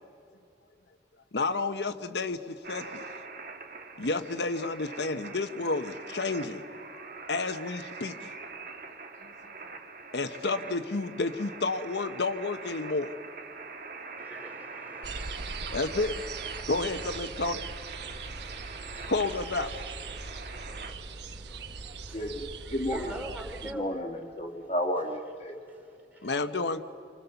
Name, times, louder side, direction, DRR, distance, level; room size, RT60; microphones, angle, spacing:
voice 1, 1.3-3.0 4.0-6.6 7.3-8.3 9.2-9.3 10.1-13.1 15.7-16.2 16.7-17.6 19.1-19.7 26.2-26.8, left 3 dB, 70° left, 1.0 m, -30 dB
sound 1, 2.6-20.9, right 4 dB, 50° right, 2.1 m, -43 dB
voice 2, 14.2-16.9 17.2-24.0 24.4-24.7 25.5-26.4, right 1 dB, 10° right, 3.7 m, -48 dB
sound 2, 15.0-23.7, right 4 dB, 70° right, 1.0 m, -40 dB
voice 3, 22.1-23.2 23.6-25.6, equal, 35° left, 1.6 m, -32 dB
30.0 x 25.5 x 7.0 m
head